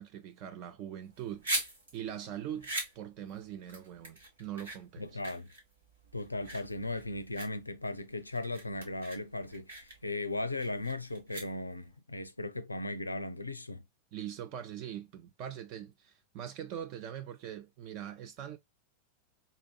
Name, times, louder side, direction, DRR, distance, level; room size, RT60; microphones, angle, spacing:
voice 1, 0.0-1.6 1.9-5.1 14.1-18.6, right 10 dB, 40° right, 0.6 m, -42 dB
sound 1, 1.0-11.9, right 2 dB, 70° right, 1.6 m, -41 dB
voice 2, 5.0-5.5 6.1-13.8, left 2 dB, 85° left, 0.4 m, -37 dB
4.0 x 2.6 x 2.2 m
figure-of-eight pair, 90°, 0 cm